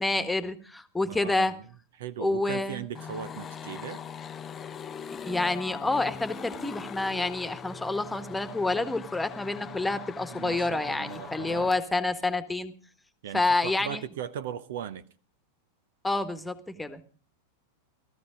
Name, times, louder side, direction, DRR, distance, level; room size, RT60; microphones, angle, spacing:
voice 1, 0.0-1.6 2.2-2.8 5.1-12.7 13.3-14.0 16.0-17.0, left 2 dB, 5° left, 1.5 m, -28 dB
voice 2, 1.1-1.6 2.0-4.0 10.3-11.7 13.2-15.0, right 9 dB, 55° right, 0.8 m, -38 dB
sound 1, 2.9-11.8, left 7 dB, 20° left, 0.8 m, -41 dB
16.5 x 14.0 x 5.1 m
figure-of-eight pair, 90°, 0 cm